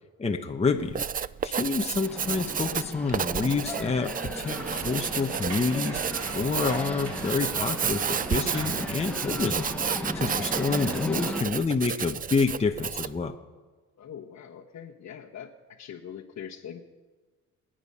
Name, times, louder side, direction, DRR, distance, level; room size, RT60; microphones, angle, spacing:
voice 1, 0.2-13.3, left 4 dB, 20° left, 3 dB, 1.0 m, -28 dB
Writing, 0.8-13.2, right 7 dB, 30° right, 0.4 m, -31 dB
sound 1, 2.0-11.4, left 1 dB, 5° left, 1.2 m, -37 dB
sound 2, 4.5-11.0, right 3 dB, 65° right, 4.0 m, -41 dB
voice 2, 14.0-16.8, left 8 dB, 60° left, -2 dB, 1.3 m, -42 dB
27.0 x 9.1 x 5.6 m, 1.4 s
cardioid pair, 90°, 30 cm